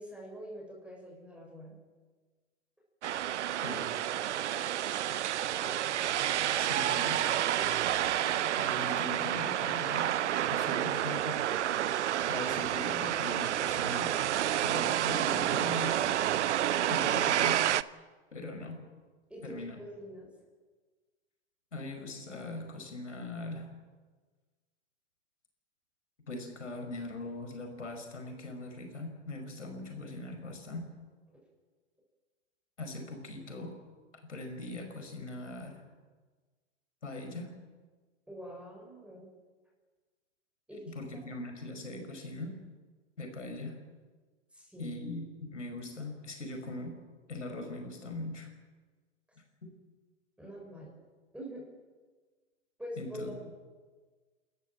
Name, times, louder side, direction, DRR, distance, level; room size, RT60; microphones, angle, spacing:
voice 1, 0.0-1.8 5.5-5.8 7.6-7.8 8.1-8.4 19.3-20.3 38.3-39.3 40.7-40.8 41.1-41.2 44.5-44.9 50.4-50.9 51.3-51.7 52.8-53.5, equal, 5° right, -2 dB, 6.8 m, -45 dB
sound 1, 3.0-17.8, right 11 dB, 75° right, 0.7 m, -29 dB
voice 2, 3.6-3.9 6.6-7.2 8.6-10.1 10.4-11.5 12.3-16.1 16.9-17.6 18.3-18.8 19.4-19.8 21.7-23.7 26.3-30.9 32.8-33.7 34.3-35.8 37.0-37.5 40.7-42.5 43.2-43.8 44.8-47.0 47.3-48.5 53.0-53.5, left 2 dB, 90° left, 4 dB, 5.2 m, -41 dB
29.5 x 14.0 x 7.6 m, 1.4 s
hypercardioid pair, 110°, 35 cm